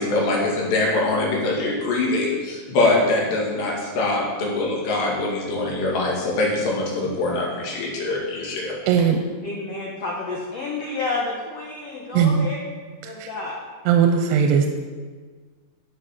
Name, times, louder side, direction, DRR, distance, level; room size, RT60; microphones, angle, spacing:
voice 1, 0.0-8.7, left 2 dB, 85° left, -2 dB, 4.5 m, -23 dB
voice 2, 8.9-9.2 12.1-12.5 13.0-13.3 13.9-14.7, right 7 dB, 90° right, 5 dB, 2.7 m, -19 dB
voice 3, 9.4-12.6 13.0-13.5, left 3 dB, 70° left, -2 dB, 1.5 m, -30 dB
11.5 x 7.7 x 6.0 m, 1.5 s
omnidirectional pair, 4.7 m